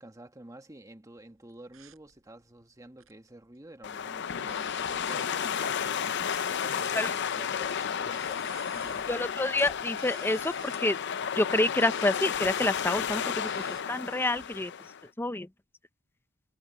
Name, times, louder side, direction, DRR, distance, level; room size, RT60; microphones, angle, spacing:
voice 1, 0.0-9.1, right 1 dB, 15° right, 1.3 m, -50 dB
sound 1, 1.5-3.3 3.6-13.8, right 12 dB, 70° right, 7.5 m, -54 dB
sound 2, 3.8-15.0, left 7 dB, 55° left, 0.5 m, -32 dB
sound 3, 7.1-13.2, left 7 dB, 30° left, 7.3 m, -61 dB
voice 2, 9.1-11.0 11.4-15.5, left 2 dB, 10° left, 0.6 m, -28 dB
head